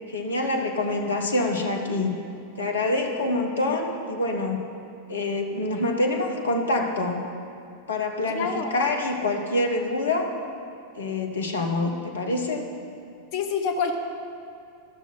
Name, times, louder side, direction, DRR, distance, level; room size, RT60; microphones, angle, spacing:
voice 1, 0.1-2.2 2.6-4.6 5.1-7.3 7.9-10.3 10.9-12.7, left 2 dB, 70° left, 2 dB, 1.0 m, -26 dB
voice 2, 8.3-8.7 13.3-14.0, left 5 dB, 45° left, 4 dB, 0.8 m, -26 dB
13.0 x 6.2 x 5.4 m, 2.5 s
figure-of-eight pair, 90°, 0 cm